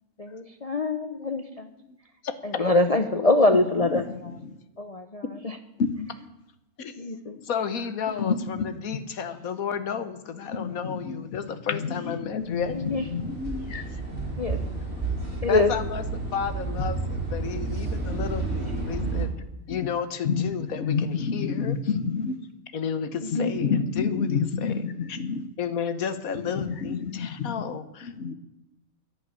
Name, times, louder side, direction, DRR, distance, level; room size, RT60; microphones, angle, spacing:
voice 1, 0.2-1.7 2.4-4.3 4.8-5.6 7.0-7.4 12.7-13.1 13.7-13.8 14.4-14.6 15.4-15.7 23.2-23.5, left 2 dB, 35° left, 0.7 m, -24 dB
voice 2, 7.4-13.0 15.5-19.3 19.7-21.8 22.7-24.8 25.1-25.2 25.6-28.1, left 7 dB, 70° left, 1.6 m, -32 dB
voice 3, 8.2-8.7 8.9-9.0 10.5-11.4 11.7-13.8 19.7-19.8 20.2-20.5 20.8-22.3 23.3-25.4 26.5-27.6 28.0-28.3, left 5 dB, 55° left, 1.2 m, -29 dB
sound 1, 12.4-19.2, right 3 dB, 45° right, 3.3 m, -31 dB
11.5 x 10.5 x 9.6 m
omnidirectional pair, 1.5 m